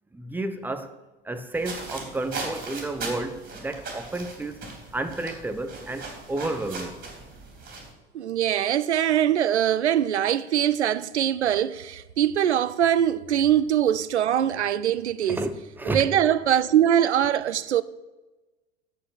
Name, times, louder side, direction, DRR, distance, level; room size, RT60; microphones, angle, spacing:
voice 1, 0.1-0.9 1.2-7.0 15.3-16.1, right 2 dB, 5° right, 0.9 m, -31 dB
sound 1, 1.5-7.9, right 3 dB, 25° right, 3.5 m, -38 dB
voice 2, 8.1-15.4 15.9-17.8, right 10 dB, 75° right, 0.6 m, -22 dB
9.7 x 8.1 x 6.1 m
figure-of-eight pair, 85°, 34 cm